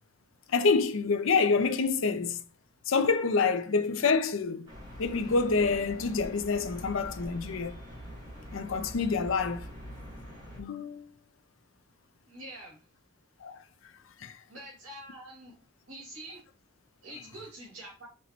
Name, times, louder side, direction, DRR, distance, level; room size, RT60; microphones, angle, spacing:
voice 1, 0.5-2.4 2.9-4.7 5.0-7.7 8.5-9.7 10.6-11.1 13.4-13.6 14.2-14.3, left 4 dB, 70° left, 0.5 m, -27 dB
sound 1, 4.7-10.6, equal, 20° right, 1.5 m, -44 dB
voice 2, 12.3-12.8 14.5-15.5 15.9-16.4 17.0-18.0, right 1 dB, 70° right, 2.1 m, -46 dB
5.5 x 3.0 x 2.8 m
head